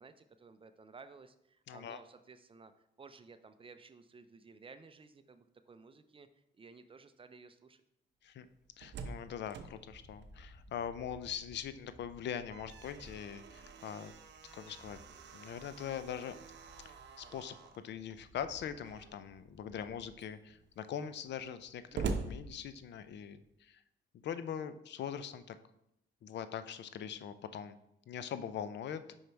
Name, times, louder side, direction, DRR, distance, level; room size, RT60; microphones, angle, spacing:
voice 1, 0.0-7.8, right 4 dB, 25° right, 10 dB, 0.5 m, -56 dB
voice 2, 1.7-2.0 8.2-8.5 8.8-14.1 14.5-15.0 15.3-16.4 16.8-23.8 24.2-25.6 26.2-27.8 28.1-29.0, left 8 dB, 60° left, 12 dB, 0.5 m, -42 dB
Slam, 8.5-11.3 11.7-11.8 12.2-17.9 18.7-19.3 19.8-19.9 20.1-23.3, right 4 dB, 60° right, 0.7 m, -45 dB
sound 1, 9.9-20.1, equal, 5° right, 1.0 m, -59 dB
5.5 x 5.0 x 4.5 m, 0.80 s
cardioid pair, 90°, 20 cm